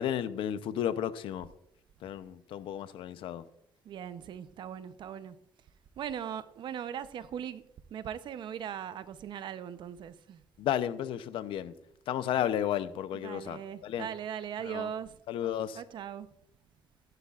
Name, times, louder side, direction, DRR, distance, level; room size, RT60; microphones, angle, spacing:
voice 1, 0.0-1.5 2.0-3.4 10.6-11.7 12.1-14.1 14.6-14.9 15.3-15.8, left 10 dB, 70° left, 0.6 m, -33 dB
voice 2, 3.8-5.4 6.0-7.6 7.9-10.4 13.2-15.2 15.8-16.3, right 9 dB, 60° right, 0.7 m, -39 dB
15.5 x 11.0 x 2.4 m
cardioid pair, 120°, 9 cm